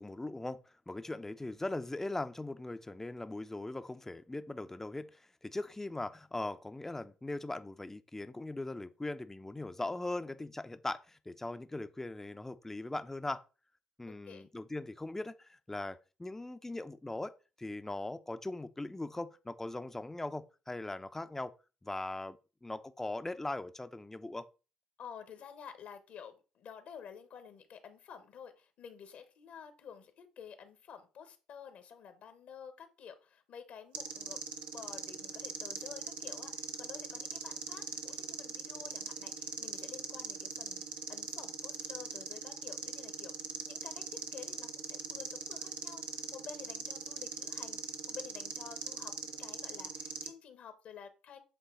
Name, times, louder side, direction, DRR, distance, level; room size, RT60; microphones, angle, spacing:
voice 1, 0.0-13.4 14.0-17.3 17.6-21.5 21.8-24.4, left 2 dB, 15° left, 0.7 m, -40 dB
voice 2, 14.1-14.5 25.0-34.4 34.7-43.3 43.6-51.4, left 7 dB, 60° left, 1.2 m, -51 dB
sound 1, 33.9-50.3, right 6 dB, 65° right, 1.0 m, -41 dB
8.2 x 3.9 x 3.8 m
hypercardioid pair, 55°, 3 cm